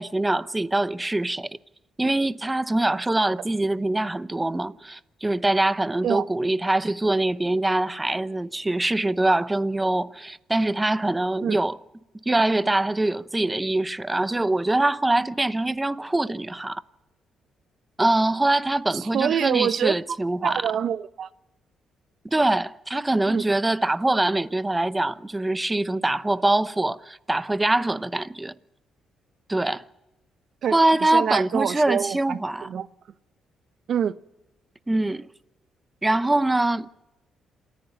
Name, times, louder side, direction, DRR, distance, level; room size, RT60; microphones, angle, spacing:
voice 1, 0.0-1.6 2.0-11.8 12.3-16.8 18.0-20.6 22.2-28.5 29.5-29.8 30.7-32.7 34.9-35.3 36.0-36.9, right 2 dB, 15° right, 0.8 m, -23 dB
voice 2, 18.9-20.0 20.4-21.3 23.3-23.4 30.6-30.7 31.1-32.9 33.9-34.2, right 8 dB, 60° right, 0.8 m, -26 dB
27.0 x 14.5 x 9.1 m
cardioid pair, 90°, 0 cm